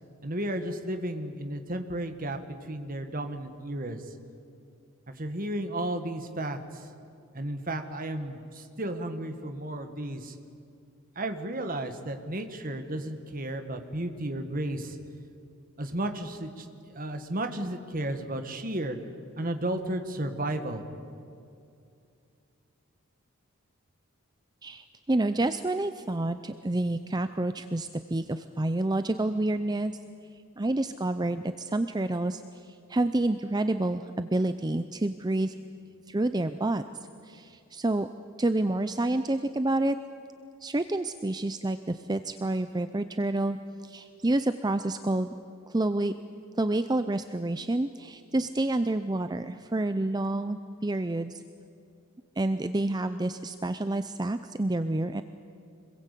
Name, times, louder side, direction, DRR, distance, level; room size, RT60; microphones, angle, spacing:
voice 1, 0.2-4.1 5.1-6.9 7.3-10.4 11.1-15.0 15.8-19.0 19.4-20.8, right 1 dB, 40° right, 7 dB, 1.6 m, -33 dB
voice 2, 24.6-29.9 30.6-35.5 36.1-36.8 37.2-38.1 38.4-40.0 40.6-43.6 43.8-45.3 45.7-46.1 46.6-51.4 52.4-55.2, right 2 dB, 20° right, 10 dB, 0.5 m, -28 dB
26.0 x 21.5 x 8.4 m, 2.5 s
head